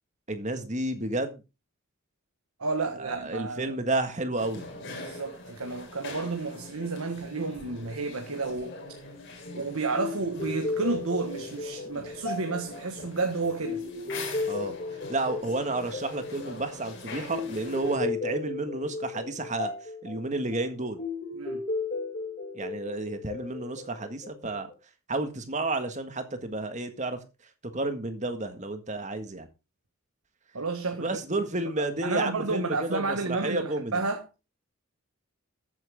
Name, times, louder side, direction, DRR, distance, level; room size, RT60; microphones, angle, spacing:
voice 1, 0.3-1.4 3.0-4.7 14.5-21.0 22.5-24.7 25.1-27.2 27.7-29.5 31.0-34.0, right 2 dB, 35° right, 1.7 m, -31 dB
voice 2, 2.6-3.8 5.0-8.7 9.5-13.8 21.4-21.6 30.5-31.2 32.0-34.2, right 3 dB, 80° right, 1.5 m, -31 dB
sound 1, 4.4-18.0, left 2 dB, 55° left, 3.8 m, -43 dB
sound 2, 10.0-24.7, left 3 dB, 35° left, 2.3 m, -35 dB
14.0 x 9.0 x 3.6 m
head